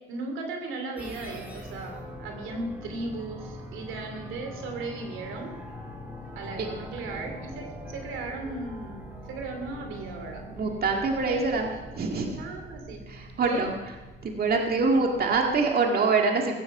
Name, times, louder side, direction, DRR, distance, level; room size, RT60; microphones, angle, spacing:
voice 1, 0.1-5.5 6.3-10.4 11.2-13.0 13.5-13.7, right 3 dB, 85° right, 4 dB, 3.0 m, -37 dB
sound 1, 1.0-15.6, equal, 10° right, 3.6 m, -43 dB
voice 2, 10.5-11.7 11.9-12.4 13.1-13.7 14.2-16.6, right 4 dB, 50° right, 1 dB, 1.9 m, -25 dB
16.0 x 15.5 x 4.8 m, 1.2 s
cardioid pair, 90°, 20 cm